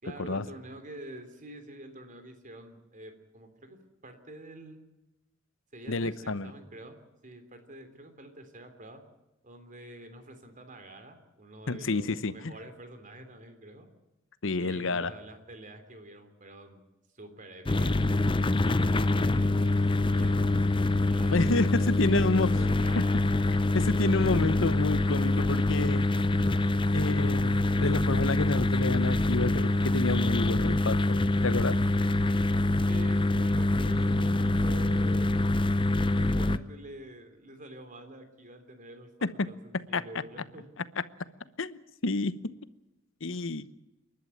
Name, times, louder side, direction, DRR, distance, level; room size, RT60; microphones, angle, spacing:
voice 1, 0.0-4.8 5.7-7.0 7.2-9.0 9.4-13.9 14.5-18.0 18.7-20.5 21.0-23.2 23.7-23.8 32.9-35.4 36.1-39.1 39.5-40.7, right 1 dB, 40° right, 3.5 m, -47 dB
voice 2, 5.9-6.5 11.7-12.5 14.4-15.1 21.3-22.5 23.0-23.1 23.7-26.1 26.9-31.8 39.2-39.5 39.9-40.0 41.6-42.5 43.2-43.7, left 3 dB, 70° left, 1.0 m, -29 dB
sound 1, 17.7-36.6, left 2 dB, 25° left, 0.7 m, -25 dB
sound 2, 23.3-34.6, right 1 dB, 75° right, 5.4 m, -57 dB
28.5 x 12.0 x 9.3 m
head